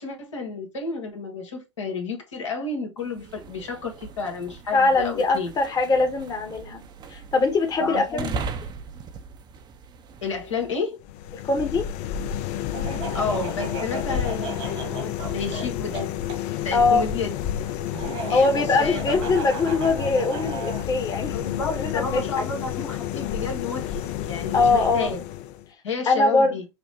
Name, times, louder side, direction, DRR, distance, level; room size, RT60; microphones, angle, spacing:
voice 1, 0.0-5.5 7.8-8.4 10.2-11.0 13.1-16.1 16.6-17.3 18.3-19.3 21.3-25.2 25.8-26.7, left 4 dB, 80° left, 1.3 m, -31 dB
sound 1, 3.0-10.9, right 5 dB, 30° right, 0.6 m, -39 dB
voice 2, 4.7-6.8 7.1-8.3 11.4-11.9 16.7-17.0 18.3-21.4 21.7-22.5 24.5-25.1 26.1-26.6, left 3 dB, 25° left, 0.9 m, -22 dB
sound 2, 11.0-25.7, left 10 dB, 50° left, 0.4 m, -30 dB
Laughter, 12.7-16.4 17.9-20.9, right 4 dB, 70° right, 1.7 m, -35 dB
5.8 x 2.0 x 2.9 m
hypercardioid pair, 95°, 15 cm